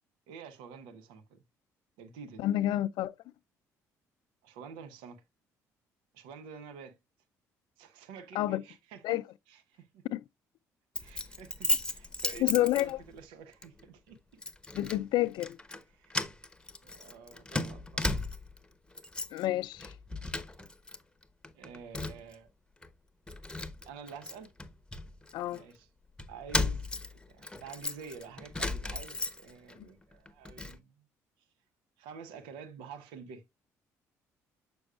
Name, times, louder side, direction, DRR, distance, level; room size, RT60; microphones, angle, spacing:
voice 1, 0.3-1.4 2.0-2.5 4.4-5.2 6.1-7.0 7.8-10.0 11.0-14.4 15.9-16.3 16.8-18.2 21.5-22.5 23.8-24.5 25.5-25.9 26.3-31.0 32.0-33.4, right 6 dB, 80° right, 0.8 m, -49 dB
voice 2, 2.4-3.1 8.3-8.6 9.0-9.2 10.1-10.2 12.4-13.0 14.7-15.6 19.3-19.9 25.3-25.6 29.8-29.9, left 15 dB, 70° left, 0.4 m, -29 dB
Keys jangling, 11.0-13.3 13.6-13.8 14.4-15.0 15.3-15.8 16.1-18.6 18.9-19.5 19.8-21.0 21.2-22.3 22.8-22.9 23.3-25.6 26.2-29.7 30.1-30.8, left 2 dB, 10° left, 0.9 m, -35 dB
6.8 x 6.2 x 2.4 m
hypercardioid pair, 55°, 8 cm